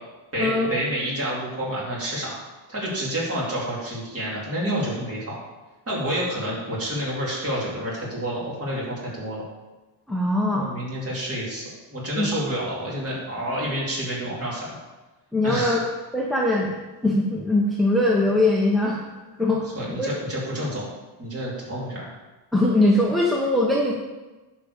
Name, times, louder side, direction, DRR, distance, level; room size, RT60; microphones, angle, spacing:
voice 1, 0.3-2.4 2.7-5.4 5.9-9.4 10.5-11.6 11.9-14.7 15.4-15.9 19.8-20.8 21.2-22.1, equal, 30° right, -5 dB, 3.8 m, -29 dB
voice 2, 10.1-10.7 12.2-12.3 15.3-15.8 16.1-16.7 17.0-19.0 19.4-19.7 20.0-20.1 22.5-23.9, left 1 dB, ahead, -3 dB, 1.0 m, -21 dB
10.0 x 5.2 x 7.0 m, 1.2 s
cardioid pair, 145°, 44 cm